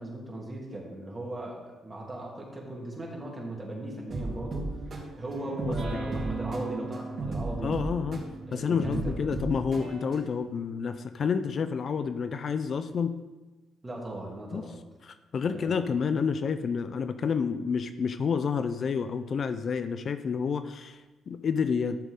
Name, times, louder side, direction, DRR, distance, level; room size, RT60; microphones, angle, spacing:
voice 1, 0.0-4.8 5.1-7.7 8.5-9.2 13.8-14.8 15.5-15.7, right 1 dB, 20° right, -3 dB, 2.9 m, -38 dB
sound 1, 4.1-10.2, right 3 dB, 45° right, 3.7 m, -35 dB
voice 2, 5.6-6.1 7.6-13.2 14.5-14.7 15.0-22.1, left 6 dB, 50° left, 10 dB, 0.5 m, -29 dB
12.5 x 7.0 x 3.7 m, 1.2 s
cardioid pair, 90°, 0 cm